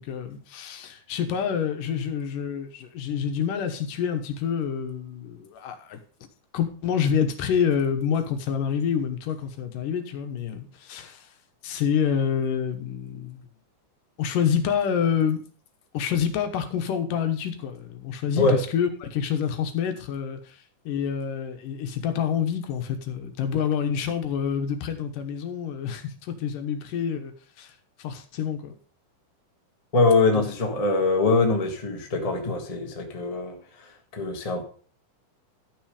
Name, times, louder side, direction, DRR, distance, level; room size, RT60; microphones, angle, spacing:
voice 1, 0.0-6.0 6.5-11.3 11.6-13.4 14.2-15.4 15.9-20.6 20.9-27.3 27.6-27.7 28.0-28.7 30.4-30.5, left 7 dB, 85° left, 2.8 m, -27 dB
voice 2, 29.9-34.6, left 3 dB, 35° left, 0.6 m, -23 dB
12.5 x 6.2 x 5.0 m
omnidirectional pair, 3.7 m